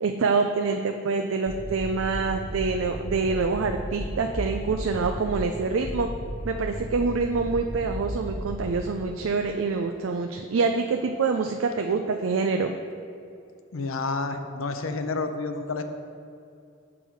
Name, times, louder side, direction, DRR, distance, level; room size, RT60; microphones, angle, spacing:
voice 1, 0.0-6.1 6.4-12.7, right 4 dB, 70° right, 5 dB, 0.4 m, -26 dB
sound 1, 1.5-8.8, equal, 30° right, 1.8 m, -35 dB
voice 2, 13.7-15.8, left 3 dB, 90° left, 7 dB, 0.6 m, -29 dB
8.1 x 6.1 x 4.6 m, 2.5 s
head